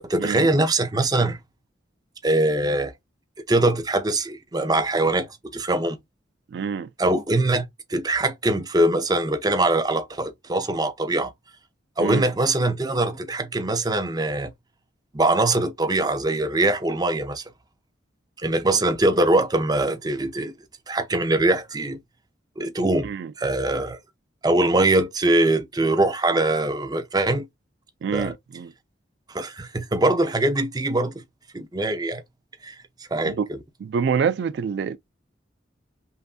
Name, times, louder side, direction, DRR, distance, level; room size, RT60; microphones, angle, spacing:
voice 1, 0.1-1.4 2.2-2.9 3.5-5.3 5.5-6.0 7.0-11.3 12.0-14.5 15.1-17.4 18.4-20.5 20.9-22.0 22.6-23.1 23.4-24.0 24.4-27.4 28.1-28.3 29.3-31.2 31.5-32.2 32.6-32.8 33.1-33.6, right 2 dB, 20° right, 0.6 m, -22 dB
voice 2, 6.5-6.9 12.0-12.3 23.0-23.3 28.0-28.7 33.2-33.5 33.8-35.0, right 6 dB, 65° right, 0.3 m, -26 dB
5.6 x 2.6 x 2.4 m
head